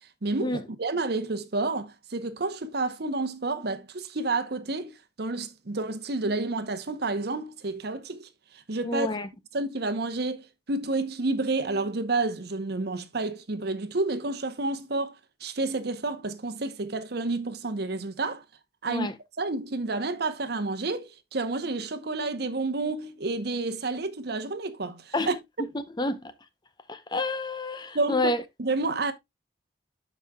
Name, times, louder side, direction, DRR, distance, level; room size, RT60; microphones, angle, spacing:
voice 1, 0.2-9.2 9.5-18.4 18.8-19.1 19.4-25.4 27.9-28.3 28.6-29.1, right 3 dB, 65° right, 0.9 m, -30 dB
voice 2, 8.8-9.3 18.9-19.1 25.1-25.3 26.0-26.2 26.9-28.4, left 2 dB, 25° left, 0.7 m, -28 dB
12.0 x 5.0 x 2.3 m
head